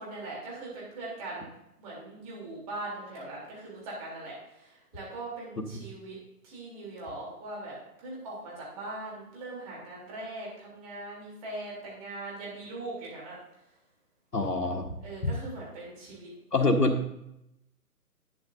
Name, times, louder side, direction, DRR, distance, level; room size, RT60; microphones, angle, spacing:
voice 1, 0.0-1.5 1.8-6.2 6.4-13.4 15.0-16.3, right 2 dB, 25° right, -4 dB, 3.4 m, -40 dB
voice 2, 14.3-14.9 16.5-17.1, left 2 dB, 85° left, 5 dB, 1.4 m, -25 dB
11.5 x 8.7 x 2.7 m, 0.82 s
figure-of-eight pair, 140°, 46 cm